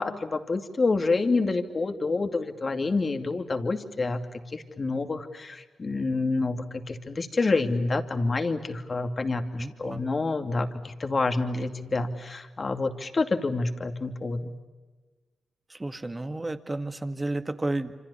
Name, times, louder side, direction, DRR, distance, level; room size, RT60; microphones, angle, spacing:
voice 1, 0.0-14.5, left 3 dB, 45° left, 6 dB, 2.6 m, -28 dB
voice 2, 9.6-10.0 15.7-17.9, right 2 dB, 25° right, 9 dB, 2.0 m, -32 dB
27.5 x 26.0 x 7.1 m, 1.3 s
cardioid pair, 60°, 0 cm